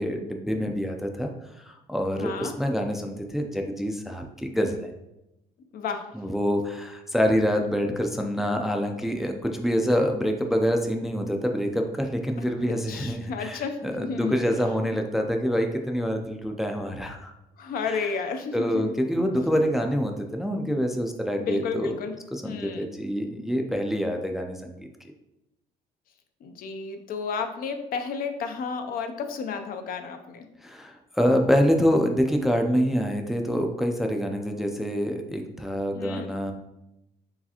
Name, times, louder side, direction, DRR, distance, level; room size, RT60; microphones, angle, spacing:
voice 1, 0.0-1.3 1.6-4.9 6.2-17.3 17.9-18.1 18.5-21.9 22.3-24.9 30.6-36.5, equal, ahead, 3 dB, 0.4 m, -26 dB
voice 2, 2.2-2.5 5.7-6.1 12.6-14.5 17.6-19.0 21.4-22.1 22.4-22.9 26.4-30.5 35.9-36.3, left 5 dB, 60° left, 6 dB, 0.5 m, -32 dB
4.7 x 3.2 x 2.8 m, 0.91 s
cardioid pair, 110°, 17 cm